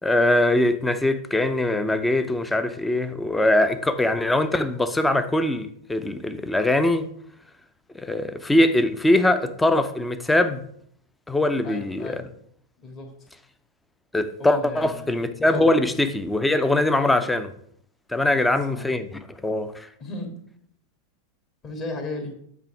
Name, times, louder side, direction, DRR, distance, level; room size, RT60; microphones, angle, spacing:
voice 1, 0.0-7.1 7.9-10.6 11.3-12.2 14.1-17.5 18.1-19.9, left 1 dB, 5° left, 0.6 m, -22 dB
voice 2, 11.6-12.3 12.8-13.1 14.4-15.1 15.4-15.8 17.0-17.2 18.2-18.9 20.0-20.4 21.6-22.3, left 3 dB, 30° left, 1.7 m, -35 dB
8.2 x 3.4 x 5.9 m
figure-of-eight pair, 90°, 0 cm